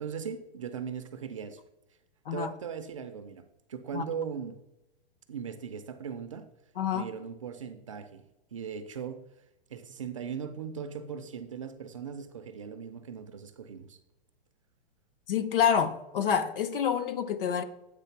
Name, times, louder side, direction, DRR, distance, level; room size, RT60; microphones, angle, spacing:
voice 1, 0.0-1.6 2.3-4.6 5.3-6.5 6.9-8.2 8.5-9.2 9.7-14.0, right 7 dB, 35° right, 0.4 m, -39 dB
voice 2, 6.8-7.1 15.3-17.6, left 7 dB, 65° left, 0.7 m, -27 dB
8.2 x 3.4 x 5.7 m
hypercardioid pair, 170°, 30 cm